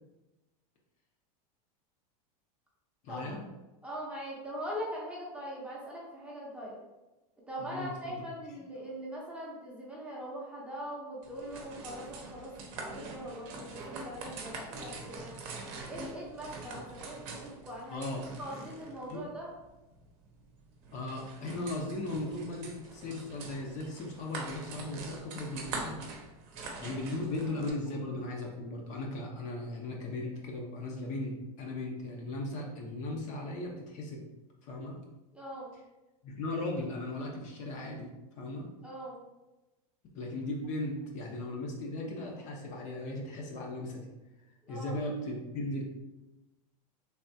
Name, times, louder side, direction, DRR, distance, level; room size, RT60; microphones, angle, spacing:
voice 1, 3.0-3.4 7.6-8.2 17.9-18.3 19.1-19.2 20.9-26.0 26.8-34.2 34.6-35.0 36.2-38.7 40.1-44.1 44.7-45.8, left 2 dB, 40° left, 0 dB, 0.6 m, -37 dB
voice 2, 3.8-6.8 7.5-15.4 15.9-18.0 18.4-19.5 35.3-35.7 38.8-39.2 44.6-45.0, equal, 5° right, -5 dB, 0.7 m, -41 dB
sound 1, 11.2-27.7, right 3 dB, 55° right, 0.7 m, -44 dB
3.3 x 2.3 x 2.6 m, 1.0 s
supercardioid pair, 135°, 19 cm